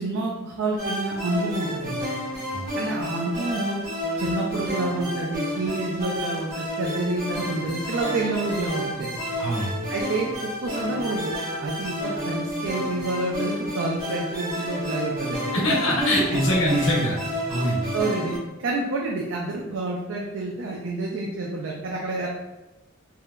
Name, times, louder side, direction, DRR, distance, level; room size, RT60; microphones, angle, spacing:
voice 1, 0.0-2.0 2.8-3.8 4.2-9.2 9.9-11.3 11.6-15.5 16.8-16.9 17.6-22.3, right 2 dB, 70° right, -2 dB, 0.4 m, -28 dB
sound 1, 0.8-18.4, equal, 45° right, 0.9 m, -31 dB
voice 2, 9.4-9.7 15.5-17.2 17.5-17.9, equal, 80° left, -4 dB, 0.7 m, -23 dB
3.1 x 2.0 x 2.3 m, 1.1 s
head